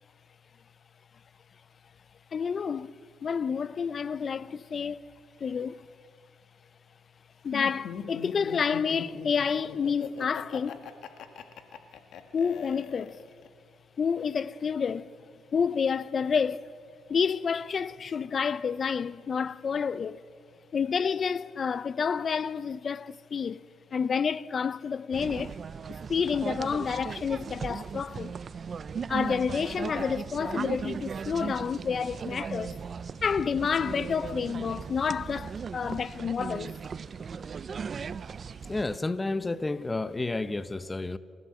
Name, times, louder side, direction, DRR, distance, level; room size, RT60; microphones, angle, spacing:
voice 1, 2.3-2.9 3.2-5.0 5.4-5.9 7.4-10.8 12.3-13.2 14.0-15.1 15.5-16.8 17.1-20.2 20.7-23.6 23.9-25.6 26.1-28.3 29.1-32.8 33.2-36.7, left 6 dB, 45° left, 0.6 m, -29 dB
Laughter, 7.5-13.5, left 7 dB, 75° left, 1.7 m, -40 dB
sound 1, 25.1-39.0, right 6 dB, 45° right, 0.5 m, -37 dB
voice 2, 38.6-41.2, left 2 dB, 20° left, 0.9 m, -31 dB
28.0 x 15.0 x 7.7 m
cardioid pair, 90°, 0 cm